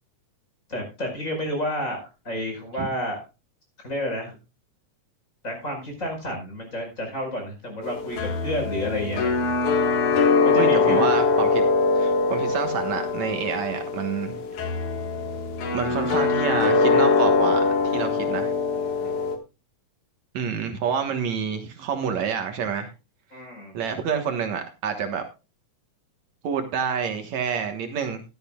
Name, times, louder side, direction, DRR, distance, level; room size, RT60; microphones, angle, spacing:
voice 1, 0.7-3.2 3.8-4.3 5.4-9.4 10.4-11.1 19.0-19.3 23.3-23.7, equal, 25° left, 2 dB, 5.3 m, -30 dB
sound 1, 7.8-19.4, left 4 dB, 80° left, 3.1 m, -22 dB
voice 2, 10.5-11.6 12.0-14.4 15.7-18.5 20.3-22.9 23.7-25.2 26.4-28.2, right 7 dB, 70° right, 6 dB, 2.5 m, -28 dB
15.5 x 12.0 x 2.3 m, 0.29 s
omnidirectional pair, 3.4 m